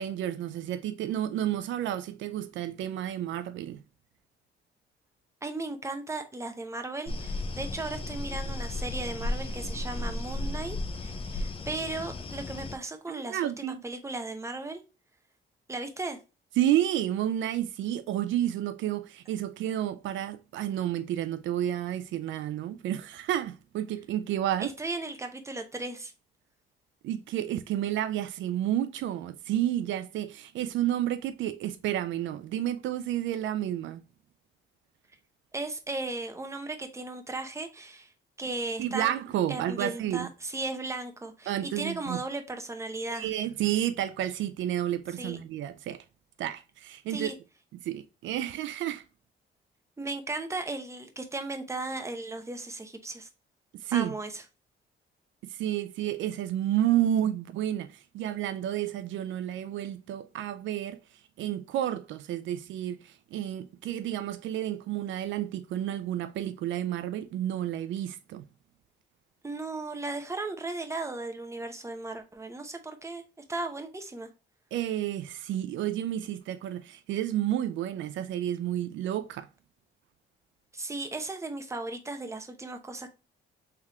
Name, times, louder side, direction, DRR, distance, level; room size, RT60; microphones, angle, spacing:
voice 1, 0.0-3.8 13.1-13.8 16.6-24.7 27.0-34.0 38.8-40.3 41.5-42.2 43.1-46.0 46.4-47.3 47.8-49.0 53.7-54.1 55.4-61.0 61.4-68.4 74.7-79.5, right 12 dB, 75° right, 0.4 m, -31 dB
voice 2, 5.4-10.8 11.0-14.8 15.7-16.2 24.6-26.1 35.5-38.1 38.4-39.1 39.5-43.3 45.2-45.4 47.1-47.3 50.0-53.3 53.9-54.3 69.4-73.2 73.5-74.3 80.7-83.1, right 2 dB, 15° right, 0.8 m, -36 dB
sound 1, 7.1-12.8, left 2 dB, 30° left, 0.6 m, -34 dB
3.5 x 3.4 x 2.8 m
cardioid pair, 90°, 20 cm